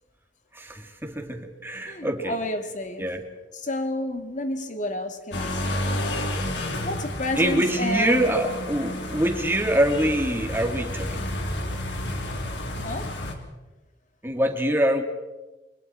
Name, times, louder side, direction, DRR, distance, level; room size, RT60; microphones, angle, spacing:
voice 1, 0.5-2.4 3.0-3.2 7.4-11.4 14.2-15.0, right 1 dB, 15° right, 3 dB, 2.9 m, -24 dB
voice 2, 1.9-3.1 3.5-6.0 6.8-8.5 12.8-13.1, left 1 dB, 45° left, 6 dB, 2.2 m, -30 dB
sound 1, 5.3-13.3, left 1 dB, 80° left, 3.9 m, -31 dB
30.0 x 25.0 x 4.7 m, 1.1 s
head